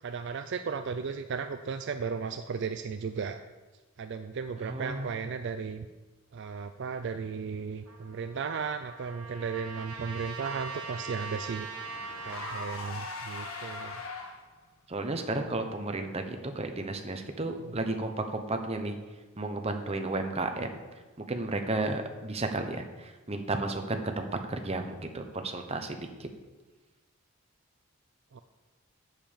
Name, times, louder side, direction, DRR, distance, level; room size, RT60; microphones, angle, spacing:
voice 1, 0.0-3.4 4.0-5.9 6.3-11.7 12.2-14.0 17.7-17.9 28.3-28.4, right 5 dB, 55° right, 9 dB, 0.4 m, -35 dB
voice 2, 4.6-5.1 14.9-19.0 19.4-20.8 21.2-26.3, right 2 dB, 30° right, 6 dB, 0.8 m, -33 dB
Trumpet, 7.9-13.0, right 4 dB, 85° right, 1.5 m, -42 dB
Car / Engine, 9.6-14.6, left 3 dB, 70° left, 1.5 m, -42 dB
7.9 x 6.7 x 7.2 m, 1.3 s
head